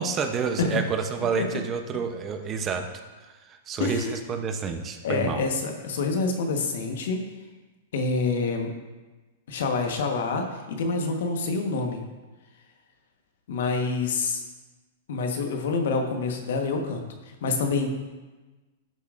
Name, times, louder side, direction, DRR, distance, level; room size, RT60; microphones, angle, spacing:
voice 1, 0.0-2.8 3.3-5.4, right 5 dB, 25° right, 6 dB, 0.8 m, -29 dB
voice 2, 3.8-4.2 5.0-7.2 7.9-8.7 9.5-12.0 13.5-14.4 15.1-17.0 17.4-17.9, left 4 dB, 70° left, 3 dB, 1.3 m, -27 dB
11.5 x 7.0 x 2.6 m, 1.2 s
hypercardioid pair, 130°, 0 cm